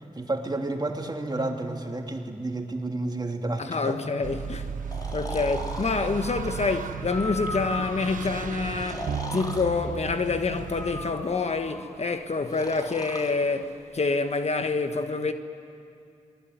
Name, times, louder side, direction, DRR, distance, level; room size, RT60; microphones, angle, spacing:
voice 1, 0.0-4.0, right 2 dB, 30° right, 3.0 m, -31 dB
voice 2, 3.6-4.8 5.1-15.3, left 4 dB, 55° left, 1.5 m, -27 dB
sound 1, 4.2-11.1, right 6 dB, 80° right, 1.2 m, -35 dB
Breathing, 4.9-5.9 7.0-8.2 8.8-9.7 10.6-11.9 12.5-13.3, left 2 dB, 30° left, 3.2 m, -37 dB
28.5 x 20.0 x 9.6 m
cardioid pair, 45°, 13 cm